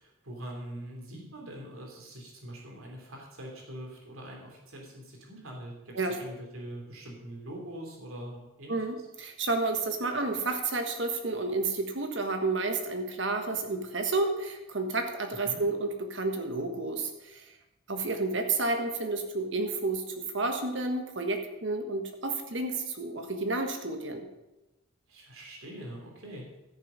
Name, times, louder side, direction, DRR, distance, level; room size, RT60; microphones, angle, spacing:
voice 1, 0.0-8.8 15.4-15.6 25.1-26.5, right 1 dB, 85° right, 0 dB, 3.0 m, -43 dB
voice 2, 8.7-17.5 17.9-24.3, right 3 dB, 60° right, 5 dB, 1.5 m, -31 dB
13.5 x 6.6 x 5.6 m, 1.0 s
head